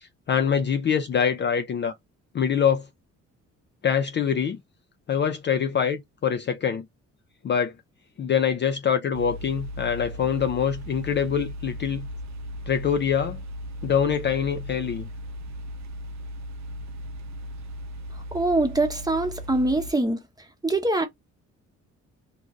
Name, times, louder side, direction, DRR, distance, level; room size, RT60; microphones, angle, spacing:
voice 1, 0.3-1.9 2.3-2.8 3.8-4.6 5.1-6.8 7.4-7.7 8.2-12.0 12.7-13.4 13.8-15.1, left 7 dB, 40° left, 0.4 m, -24 dB
sound 1, 9.1-19.9, equal, 65° right, 0.6 m, -37 dB
voice 2, 18.3-20.2 20.6-21.1, right 2 dB, 15° right, 0.8 m, -23 dB
2.5 x 2.4 x 3.1 m
cardioid pair, 90°, 30 cm